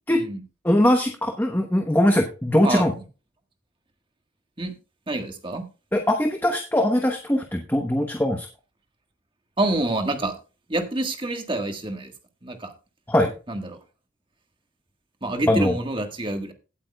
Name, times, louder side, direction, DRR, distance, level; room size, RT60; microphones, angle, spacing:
voice 1, 0.1-0.4 2.6-2.8 4.6-4.8 5.1-5.6 9.6-10.3 10.7-12.1 12.4-12.7 13.5-13.8 15.2-16.5, right 2 dB, 25° right, 5 dB, 1.5 m, -27 dB
voice 2, 0.6-2.9 5.9-8.5 13.1-13.3 15.5-15.7, left 1 dB, 10° left, 3 dB, 1.0 m, -21 dB
17.0 x 8.4 x 2.3 m, 0.32 s
head